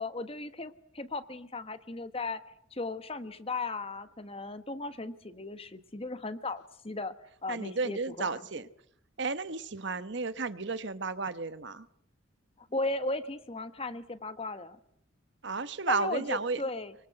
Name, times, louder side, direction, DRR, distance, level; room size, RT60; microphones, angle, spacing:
voice 1, 0.0-2.4 2.7-7.1 7.4-8.5 12.6-14.8 15.9-16.9, left 2 dB, 30° left, 1.3 m, -36 dB
voice 2, 7.5-8.7 9.2-11.8 15.4-16.6, right 4 dB, 60° right, 1.1 m, -33 dB
24.5 x 24.0 x 7.9 m
head